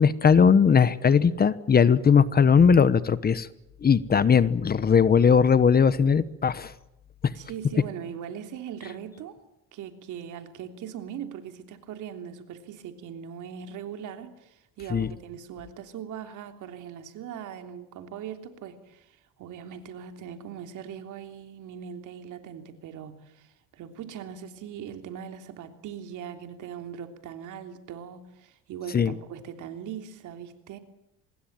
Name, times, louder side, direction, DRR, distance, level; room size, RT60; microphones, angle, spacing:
voice 1, 0.0-3.5 3.8-6.7 14.9-15.1 28.9-29.1, left 6 dB, 30° left, 16 dB, 1.1 m, -19 dB
voice 2, 7.3-9.4 9.7-30.8, right 8 dB, 70° right, 6 dB, 3.3 m, -40 dB
25.5 x 21.0 x 9.0 m, 0.87 s
cardioid pair, 115°, 32 cm